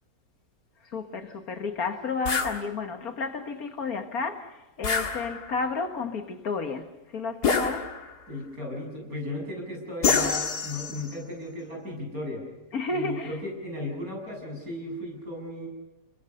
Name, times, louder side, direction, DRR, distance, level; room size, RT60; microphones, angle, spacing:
voice 1, 0.9-7.9 12.7-13.3, left 4 dB, 65° left, 2.1 m, -32 dB
sound 1, 2.3-2.6 4.8-5.7 7.4-8.2 10.0-11.1, left 5 dB, 90° left, 2.5 m, -27 dB
voice 2, 8.3-12.4 12.9-15.7, left 1 dB, 65° right, 8.5 m, -35 dB
30.0 x 21.5 x 6.7 m
omnidirectional pair, 1.7 m